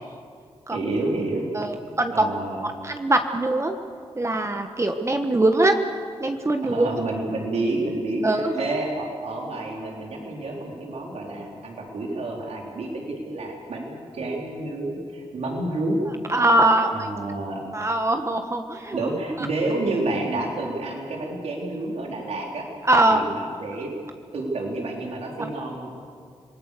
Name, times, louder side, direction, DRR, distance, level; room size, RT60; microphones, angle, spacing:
voice 1, 0.7-1.5 1.8-2.7 6.6-16.0 16.9-17.7 18.9-22.7 23.0-23.9 24.3-25.9, right 2 dB, 85° right, -1 dB, 4.3 m, -29 dB
voice 2, 1.5-2.2 2.6-3.8 4.2-5.7 6.2-6.9 8.2-8.5 16.3-17.1 17.7-19.0 22.8-23.2 25.4-25.5, right 2 dB, 25° right, 5 dB, 1.4 m, -22 dB
27.0 x 19.5 x 6.9 m, 2.1 s
cardioid pair, 75°, 11 cm